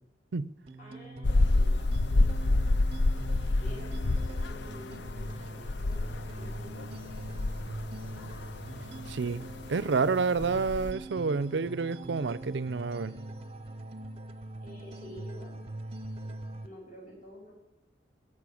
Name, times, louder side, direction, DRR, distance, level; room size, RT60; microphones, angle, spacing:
sound 1, 0.7-16.7, right 2 dB, 30° right, 0.7 m, -43 dB
voice 1, 0.8-1.8 2.1-2.7 3.6-7.3 14.6-15.6 16.2-16.3 16.6-17.5, equal, 45° left, 6.4 m, -50 dB
sound 2, 1.2-10.9, left 2 dB, 65° left, 0.6 m, -29 dB
voice 2, 9.1-9.4 9.7-13.1, right 4 dB, 70° right, 0.5 m, -29 dB
16.5 x 6.7 x 8.5 m
head